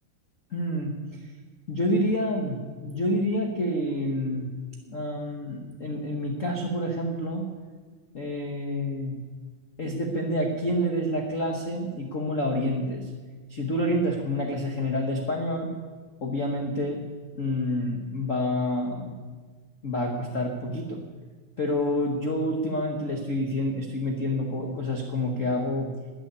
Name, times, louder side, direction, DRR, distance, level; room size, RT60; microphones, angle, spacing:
voice 1, 0.5-1.0 1.7-4.5 4.9-7.5 8.1-9.2 9.8-13.1 13.5-15.7 16.2-17.0 17.3-19.2 19.8-21.0 21.6-25.9, left 1 dB, 70° left, 1 dB, 0.7 m, -28 dB
14.0 x 8.4 x 9.6 m, 1.5 s
omnidirectional pair, 3.5 m